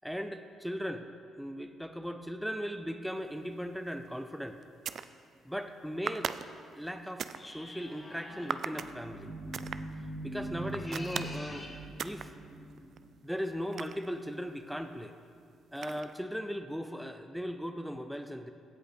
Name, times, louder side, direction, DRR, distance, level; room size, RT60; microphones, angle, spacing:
voice 1, 0.0-1.1 1.4-4.6 5.4-6.3 6.7-9.3 10.2-11.7 12.0-12.3 12.8-12.9 13.2-15.1 15.7-18.5, equal, ahead, 7 dB, 0.5 m, -38 dB
sound 1, 3.9-4.1 4.6-5.1 6.1-7.4 8.5-8.9 9.5-9.8 10.7-11.4 12.0-12.3 12.7-14.5 15.8-16.2, right 7 dB, 60° right, 0.3 m, -38 dB
sound 2, 7.3-8.6 10.6-11.8, left 1 dB, 25° left, 1.4 m, -46 dB
sound 3, 8.2-13.6, right 1 dB, 30° right, 1.5 m, -43 dB
16.0 x 5.5 x 4.3 m, 2.3 s
cardioid pair, 90°, 0 cm